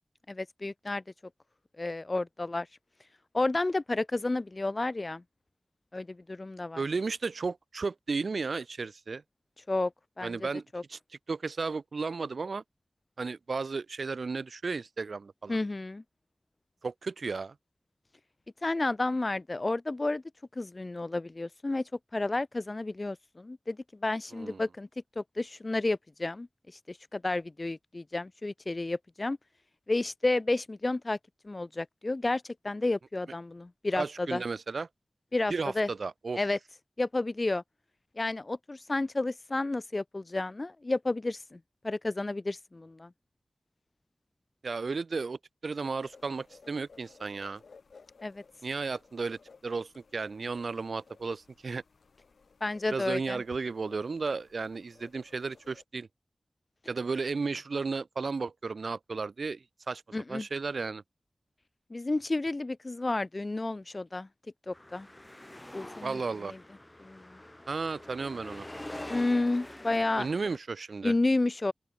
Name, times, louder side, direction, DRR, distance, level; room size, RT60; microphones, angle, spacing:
voice 1, 0.3-1.0 1.8-2.7 3.3-5.2 5.9-6.8 9.7-9.9 10.2-10.4 10.7-10.8 15.5-16.0 18.6-20.2 20.6-21.8 22.1-23.8 24.0-24.9 25.2-26.5 26.9-29.4 29.9-31.2 31.4-34.4 35.3-35.9 36.4-36.6 37.0-37.6 38.2-41.4 41.8-43.1 48.2-48.4 52.6-53.4 60.1-60.4 61.9-64.3 64.7-65.1 65.7-66.2 67.0-67.2 69.1-70.3 71.0-71.7, left 2 dB, 40° left, 0.6 m, -31 dB
voice 2, 6.8-9.2 10.2-11.0 11.3-12.6 13.2-15.6 16.8-17.5 24.3-24.6 34.0-34.9 35.5-36.4 44.6-47.6 48.6-51.8 52.9-56.1 56.9-60.0 60.3-61.0 66.0-66.5 67.7-68.7 70.2-71.1, right 4 dB, 80° right, 0.5 m, -34 dB
sound 1, 46.0-55.8, left 4 dB, 90° left, 6.1 m, -58 dB
sound 2, 64.7-70.6, left 1 dB, 20° left, 3.7 m, -45 dB
open air
wide cardioid pair, 55°, 0 cm